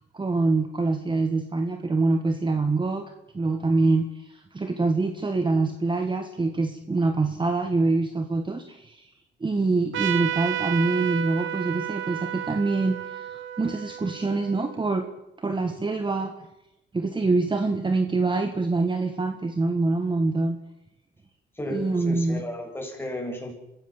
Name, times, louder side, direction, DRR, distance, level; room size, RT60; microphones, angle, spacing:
voice 1, 0.1-9.1 9.4-15.1 15.4-16.5 16.9-20.6 21.7-22.4, right 3 dB, 25° right, 6 dB, 1.8 m, -25 dB
Trumpet, 9.9-15.0, right 11 dB, 75° right, 1.1 m, -32 dB
voice 2, 21.5-23.5, left 1 dB, 10° left, 1 dB, 7.2 m, -34 dB
25.0 x 16.0 x 7.3 m, 0.88 s
cardioid pair, 90°, 20 cm